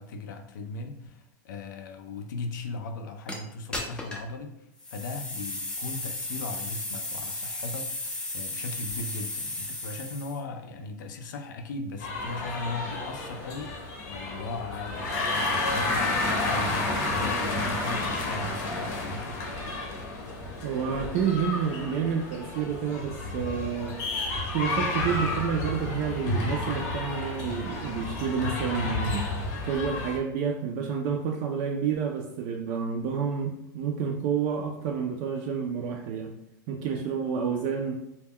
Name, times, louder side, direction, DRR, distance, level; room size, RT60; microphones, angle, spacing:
voice 1, 0.0-13.7 14.1-19.2, left 3 dB, 85° left, 5 dB, 0.4 m, -38 dB
sound 1, 3.3-3.4 3.7-4.3 4.8-10.4, left 2 dB, 10° left, 0.4 m, -35 dB
sound 2, 12.0-30.2, left 2 dB, 60° left, 0.7 m, -31 dB
voice 2, 20.6-24.0 24.5-29.3 29.6-36.3 36.7-38.0, right 6 dB, 55° right, 1 dB, 0.3 m, -29 dB
2.2 x 2.1 x 3.5 m, 0.83 s
supercardioid pair, 130°, 10 cm